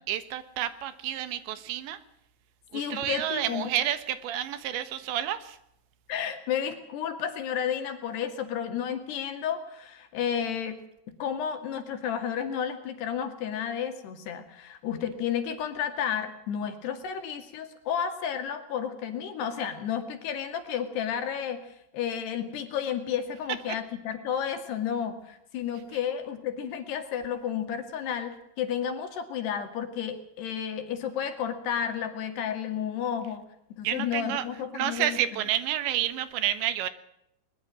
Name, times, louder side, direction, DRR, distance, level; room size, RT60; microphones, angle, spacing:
voice 1, 0.1-2.0 2.7-5.6 33.8-34.5 34.7-36.9, right 12 dB, 85° right, 12 dB, 3.6 m, -30 dB
voice 2, 2.7-3.7 6.1-10.8 11.1-21.7 21.9-33.5 33.8-35.2, left 8 dB, 70° left, 6 dB, 4.3 m, -32 dB
21.5 x 21.0 x 6.2 m, 0.79 s
omnidirectional pair, 5.0 m